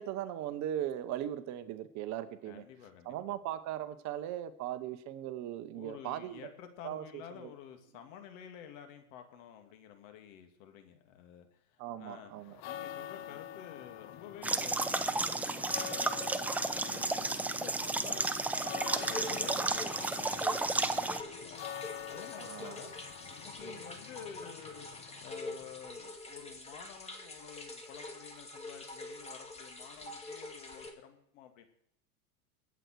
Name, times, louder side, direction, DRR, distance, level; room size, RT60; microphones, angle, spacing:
voice 1, 0.0-2.6 3.0-6.4 6.8-7.0 11.8-12.6 22.4-22.7 23.6-23.8, right 11 dB, 40° right, 12 dB, 1.1 m, -38 dB
voice 2, 2.4-3.2 5.7-16.4 16.8-21.6 22.1-22.9 23.3-31.7, left 9 dB, 60° left, 6 dB, 2.9 m, -51 dB
sound 1, 12.4-25.9, left 11 dB, 35° left, 0.8 m, -47 dB
sound 2, 14.4-21.2, right 2 dB, 5° right, 0.4 m, -32 dB
sound 3, 18.9-30.9, left 2 dB, 15° left, 2.3 m, -45 dB
22.0 x 8.2 x 4.7 m, 0.72 s
hypercardioid pair, 120°, 45 cm